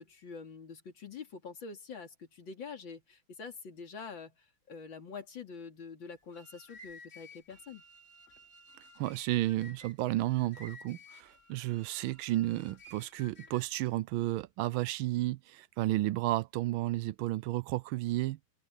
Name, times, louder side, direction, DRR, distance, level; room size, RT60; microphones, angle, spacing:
voice 1, 0.0-7.8, left 5 dB, 65° left, 3.4 m, -46 dB
sound 1, 6.2-13.8, left 1 dB, 35° left, 4.7 m, -55 dB
voice 2, 9.0-18.4, right 17 dB, 80° right, 1.3 m, -32 dB
open air
omnidirectional pair, 2.3 m